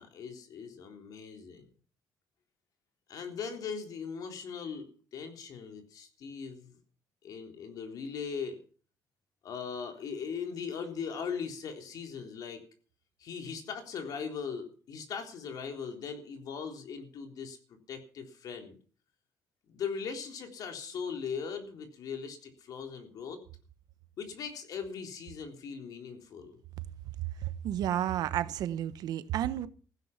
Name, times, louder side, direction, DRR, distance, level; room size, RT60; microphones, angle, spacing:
voice 1, 0.0-1.7 3.1-6.8 7.2-8.6 9.4-12.6 13.2-18.8 19.7-23.4 24.2-26.6, left 6 dB, 70° left, 3.7 m, -39 dB
voice 2, 27.6-29.7, right 11 dB, 85° right, 1.0 m, -31 dB
15.5 x 10.5 x 7.2 m
cardioid pair, 135°, 7 cm